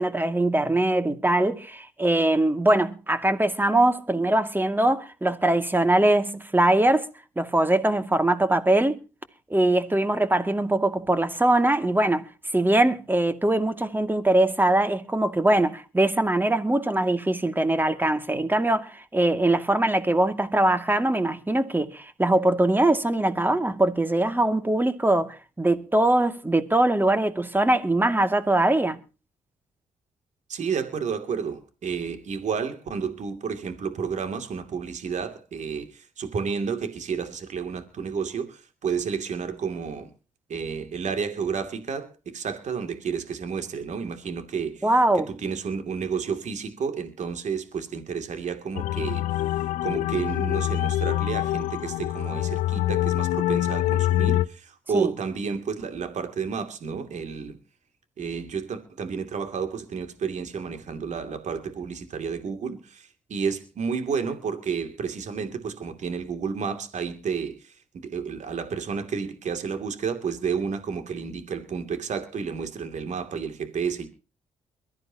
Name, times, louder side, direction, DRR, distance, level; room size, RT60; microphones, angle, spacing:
voice 1, 0.0-7.1 7.4-9.0 9.5-12.3 12.5-29.0 44.8-45.3 54.9-55.1, right 1 dB, 15° right, 2.3 m, -22 dB
voice 2, 30.5-40.1 40.5-44.9 45.1-49.2 49.8-57.6 58.2-67.8 68.0-74.1, right 6 dB, 65° right, 2.7 m, -31 dB
sound 1, 48.7-54.5, left 14 dB, 85° left, 0.6 m, -25 dB
22.5 x 14.0 x 2.9 m
supercardioid pair, 55°, 13 cm